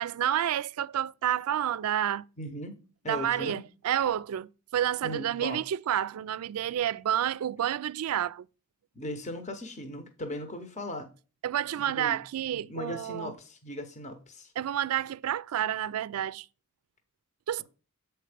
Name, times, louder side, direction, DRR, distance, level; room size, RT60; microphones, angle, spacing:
voice 1, 0.0-2.2 3.1-8.5 11.4-13.3 14.6-16.5 17.5-17.6, right 10 dB, 75° right, 0.3 m, -29 dB
voice 2, 2.4-2.8 3.0-3.6 5.0-5.6 8.9-11.1 11.8-12.2 12.5-14.5, left 1 dB, 30° left, 0.9 m, -38 dB
7.6 x 4.5 x 5.0 m
head